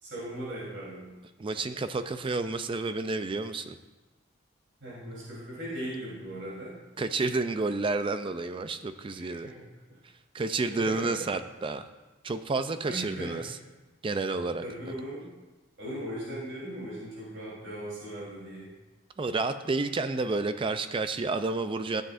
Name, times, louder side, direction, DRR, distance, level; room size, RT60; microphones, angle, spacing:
voice 1, 0.0-1.1 4.8-6.8 9.1-9.6 10.7-11.1 12.9-13.4 14.6-15.3 15.8-18.7, right 1 dB, 75° right, -7 dB, 3.4 m, -38 dB
voice 2, 1.4-3.8 7.0-9.5 10.3-11.9 12.2-13.6 14.0-14.6 19.2-22.0, right 3 dB, 25° right, 10 dB, 0.4 m, -30 dB
13.5 x 7.7 x 2.5 m, 1.1 s
head